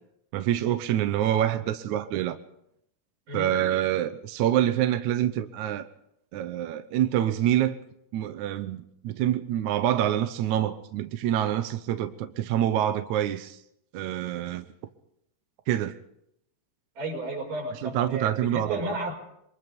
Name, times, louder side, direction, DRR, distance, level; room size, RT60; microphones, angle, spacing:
voice 1, 0.3-2.4 3.3-5.9 6.3-7.8 8.1-13.6 13.9-14.7 15.7-15.9 17.8-19.0, right 11 dB, 75° right, 1.8 m, -26 dB
voice 2, 17.0-19.1, right 1 dB, 55° right, 6.9 m, -33 dB
23.5 x 22.0 x 5.3 m
omnidirectional pair, 4.5 m